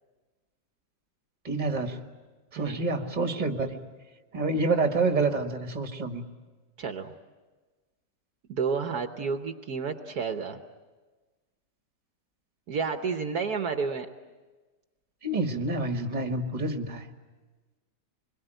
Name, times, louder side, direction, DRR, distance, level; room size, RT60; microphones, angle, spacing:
voice 1, 1.4-2.1 2.5-3.9 4.3-6.2 15.2-17.1, right 3 dB, 25° right, 5 dB, 1.7 m, -28 dB
voice 2, 6.8-7.1 8.5-10.6 12.7-14.1, right 5 dB, 65° right, 7 dB, 1.5 m, -30 dB
26.5 x 22.0 x 9.1 m, 1.3 s
omnidirectional pair, 1.8 m